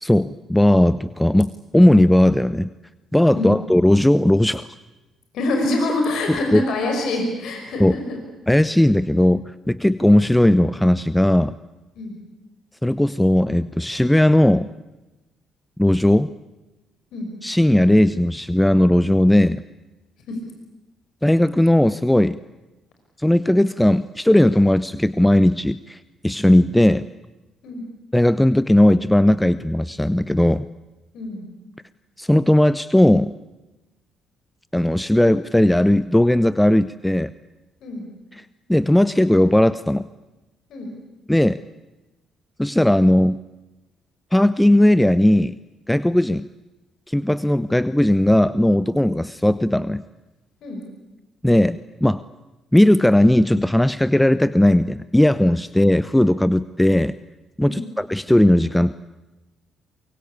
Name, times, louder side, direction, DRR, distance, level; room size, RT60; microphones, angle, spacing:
voice 1, 0.0-2.7 3.1-4.7 6.5-6.6 7.8-7.9 8.5-11.5 12.8-14.7 15.8-16.3 17.4-19.6 21.2-22.4 23.2-27.0 28.1-30.7 32.2-33.3 34.7-37.3 38.3-38.4 38.7-40.0 41.3-41.6 42.6-43.4 44.3-45.6 45.9-46.5 47.1-50.0 51.4-52.2 52.7-57.1 57.6-58.9, left 1 dB, 5° left, 15 dB, 0.8 m, -17 dB
voice 2, 5.3-8.2 12.0-12.1 17.1-17.3 20.3-20.4 27.6-27.8 31.1-31.4 37.8-38.1 40.7-40.9 50.6-50.8 57.6-57.9, left 2 dB, 65° left, 3 dB, 5.8 m, -25 dB
23.5 x 23.0 x 8.7 m, 1.1 s
hypercardioid pair, 45°, 0 cm